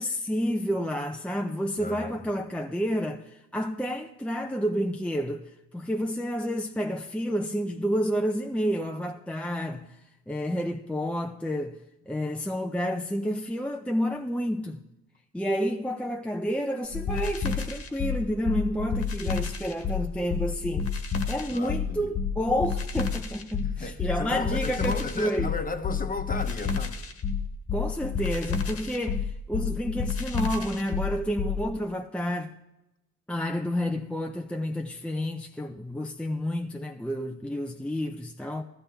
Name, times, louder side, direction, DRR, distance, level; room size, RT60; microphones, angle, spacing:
voice 1, 0.0-5.5 5.7-9.9 10.3-11.8 12.1-14.8 15.3-20.9 21.3-25.5 27.7-32.5 33.3-38.6, equal, 5° left, 0.6 m, -30 dB
voice 2, 1.8-2.2 21.5-22.1 23.6-27.0, left 4 dB, 30° left, 1.0 m, -35 dB
sound 1, 16.9-31.6, left 5 dB, 50° left, 1.4 m, -30 dB
14.5 x 14.0 x 3.4 m
cardioid pair, 90°, 30 cm